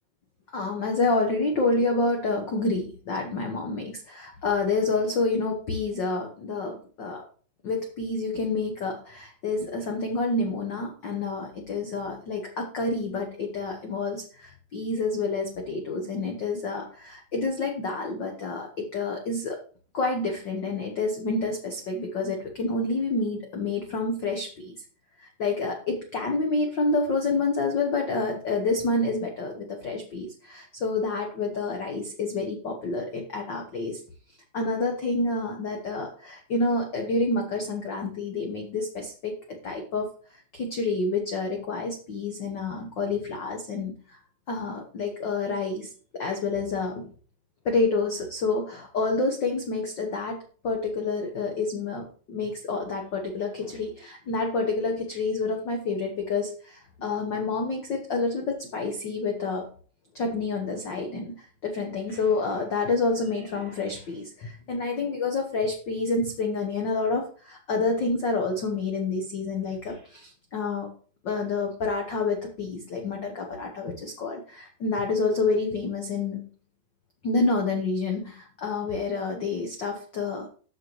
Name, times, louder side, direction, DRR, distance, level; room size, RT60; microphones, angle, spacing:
voice 1, 0.5-7.3 7.6-19.6 19.9-24.7 25.2-34.0 34.5-39.3 39.6-40.1 40.5-44.2 44.5-47.1 47.6-50.4 50.6-59.7 60.1-70.9 71.2-76.5 77.2-80.5, left 3 dB, 85° left, 2 dB, 1.0 m, -28 dB
13.5 x 5.4 x 3.1 m, 0.41 s
omnidirectional pair, 3.7 m